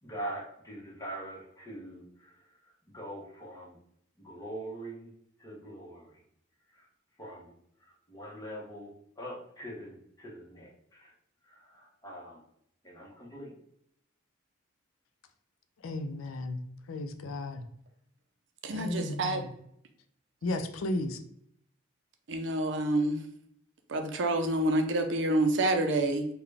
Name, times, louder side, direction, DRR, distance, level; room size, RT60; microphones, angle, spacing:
voice 1, 0.0-3.8 4.2-5.1 5.4-6.2 6.7-6.9 7.2-7.5 7.8-11.1 11.4-12.4 12.8-13.5, right 1 dB, 20° left, -4 dB, 0.9 m, -43 dB
voice 2, 15.8-16.6 16.9-17.6 18.7-19.5 20.4-21.2, left 1 dB, 85° left, 8 dB, 0.4 m, -34 dB
voice 3, 18.6-19.5 22.3-23.2 23.9-26.3, right 1 dB, 65° right, 5 dB, 0.5 m, -28 dB
3.8 x 2.2 x 3.3 m, 0.71 s
head